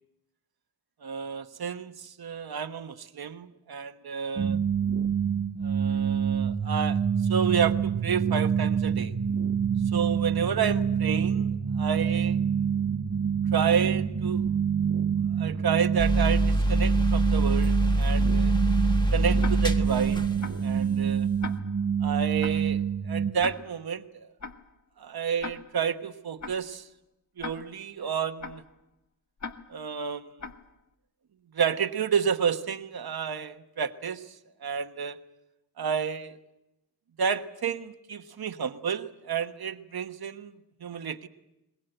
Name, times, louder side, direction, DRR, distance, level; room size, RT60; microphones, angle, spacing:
voice 1, 1.0-4.6 5.6-7.0 7.3-9.1 9.9-12.4 13.5-14.5 15.4-18.5 19.1-20.3 20.6-21.3 22.0-24.3 25.0-26.9 27.4-28.6 29.7-30.3 31.5-34.4 34.6-35.2 35.8-36.4 37.2-40.5 40.8-41.3, right 7 dB, 70° right, 8 dB, 1.2 m, -30 dB
sound 1, 4.4-23.3, right 7 dB, 45° right, 1.1 m, -27 dB
sound 2, 16.0-20.8, right 1 dB, 10° left, 1.4 m, -25 dB
Tick-tock, 19.4-19.9 20.4-20.8 21.4-21.9 22.4-22.8 23.4-23.9 24.4-24.8 25.4-25.9 26.4-26.8 27.4-27.9 28.4-28.8 29.4-29.9 30.4-30.8, left 5 dB, 50° left, 1.5 m, -40 dB
22.5 x 21.0 x 7.9 m, 0.93 s
wide cardioid pair, 80°, 38 cm